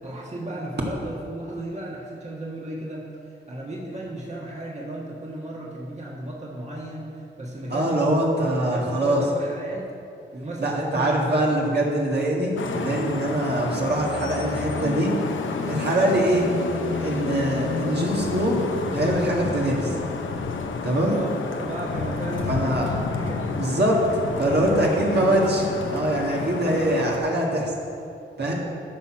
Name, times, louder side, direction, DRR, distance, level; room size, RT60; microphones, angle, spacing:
voice 1, 0.0-3.1 3.5-8.2 8.6-9.9 10.3-11.8 21.0-23.6 24.4-25.5, right 1 dB, 35° right, -3 dB, 1.6 m, -35 dB
voice 2, 7.7-9.2 10.6-15.1 15.7-16.5 17.0-18.6 18.9-19.9 20.8-21.3 22.5-22.9 23.6-24.0 24.4-27.7 28.4-28.5, right 1 dB, 55° right, -3 dB, 1.8 m, -23 dB
Vehicle horn car horn honking / Traffic noise roadway noise, 12.6-27.2, left 4 dB, 75° left, 0.7 m, -30 dB
12.5 x 4.2 x 6.1 m, 2.6 s
cardioid pair, 55°, 20 cm